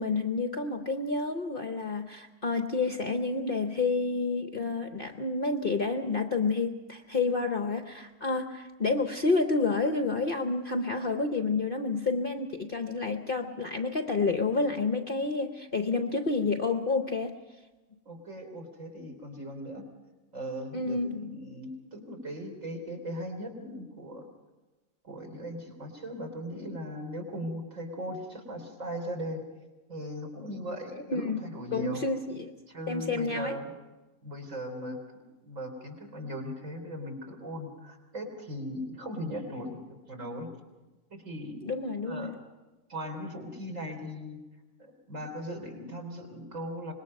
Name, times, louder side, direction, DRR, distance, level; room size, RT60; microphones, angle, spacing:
voice 1, 0.0-17.4 20.7-21.4 30.9-32.5 32.9-33.6 41.6-42.3, left 3 dB, 45° left, 6 dB, 0.9 m, -29 dB
voice 2, 18.1-19.8 20.3-24.3 25.0-29.4 29.9-32.0 32.7-33.7 34.2-35.0 35.4-39.8 40.1-40.5 41.1-41.6 42.0-42.3 42.9-44.4 44.8-46.9, equal, 55° right, 2 dB, 3.7 m, -38 dB
25.5 x 20.5 x 5.3 m, 1.1 s
omnidirectional pair, 1.7 m